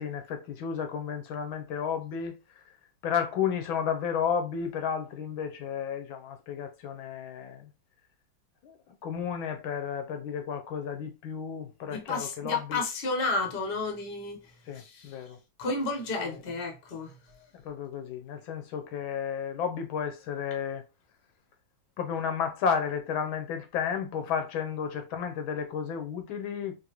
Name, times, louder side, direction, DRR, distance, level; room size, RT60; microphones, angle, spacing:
voice 1, 0.0-2.6 3.0-7.7 8.6-8.8 9.0-12.8 14.7-15.4 16.3-16.4 17.3-20.8 22.0-26.7, left 7 dB, 80° left, 1.6 m, -32 dB
voice 2, 11.9-15.2 15.6-17.1, left 3 dB, 35° left, 0.9 m, -32 dB
4.0 x 2.9 x 2.9 m
omnidirectional pair, 2.2 m